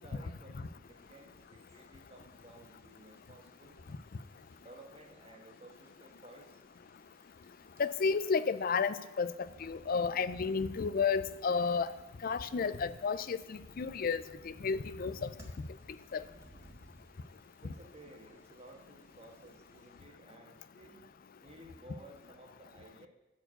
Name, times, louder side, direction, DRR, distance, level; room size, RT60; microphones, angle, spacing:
voice 1, 0.0-3.8 4.6-6.6 17.6-21.1 21.4-23.1, right 1 dB, 30° right, 2 dB, 1.5 m, -55 dB
sound 1, 0.8-20.0, equal, 15° right, 1.9 m, -62 dB
voice 2, 7.8-9.3 9.6-11.9 12.2-14.2 14.6-15.2 16.1-16.2, left 5 dB, 50° left, 15 dB, 0.4 m, -31 dB
11.0 x 4.6 x 7.8 m, 1.1 s
head